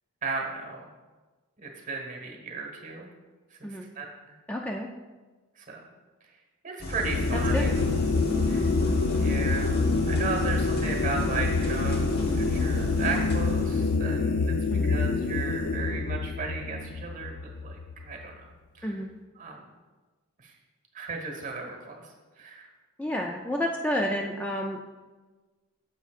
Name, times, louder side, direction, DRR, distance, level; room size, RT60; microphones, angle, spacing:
voice 1, 0.2-0.9 1.6-3.1 3.6-3.7 3.9-4.4 5.7-5.8 6.6-7.7 8.4-8.7 9.1-9.8 10.0-14.5 14.8-18.3 18.7-18.9 19.4-19.6 20.4-20.5 20.9-21.8 22.4-22.7, right 4 dB, 35° right, 2 dB, 1.3 m, -35 dB
voice 2, 4.5-4.9 7.3-7.8 14.7-14.9 18.8-19.1 23.0-24.8, equal, 5° left, 1 dB, 0.3 m, -30 dB
sound 1, 6.8-14.0, equal, 50° left, 1.1 m, -34 dB
sound 2, 6.9-18.2, left 4 dB, 80° left, 0.5 m, -27 dB
9.4 x 7.2 x 2.4 m, 1.3 s
head